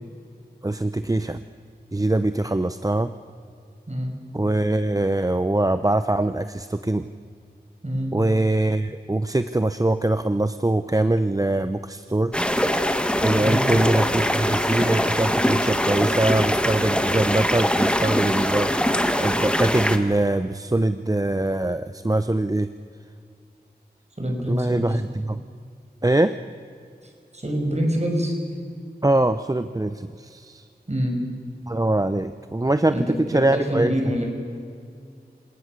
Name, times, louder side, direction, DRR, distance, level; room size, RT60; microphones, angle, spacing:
voice 1, 0.6-1.4 1.9-3.1 4.3-7.1 8.1-12.4 13.2-22.7 24.5-25.4 26.0-26.4 29.0-30.6 31.7-33.9, right 2 dB, 20° right, 11 dB, 0.7 m, -23 dB
voice 2, 7.8-8.1 13.4-13.7 24.2-25.0 27.3-28.3 30.9-31.2 32.9-34.3, equal, 40° right, 2 dB, 5.8 m, -25 dB
sound 1, 12.3-20.0, equal, 5° left, 1.7 m, -22 dB
27.5 x 18.0 x 6.7 m, 2.3 s
wide cardioid pair, 50°, 17 cm